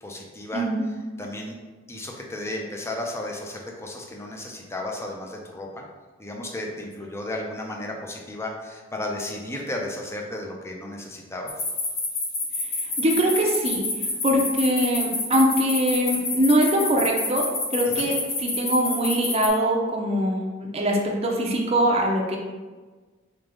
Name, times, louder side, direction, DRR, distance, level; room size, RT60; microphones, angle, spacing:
voice 1, 0.0-0.7 1.2-1.6 1.9-5.8 6.2-11.5 17.8-18.1, left 1 dB, 15° left, 0 dB, 0.6 m, -34 dB
voice 2, 0.5-0.8 13.0-13.8 14.2-17.5 17.7-22.4, equal, 30° right, 0 dB, 0.6 m, -22 dB
sound 1, 11.5-19.5, left 3 dB, 50° left, 1.0 m, -27 dB
3.5 x 3.4 x 3.7 m, 1.3 s
head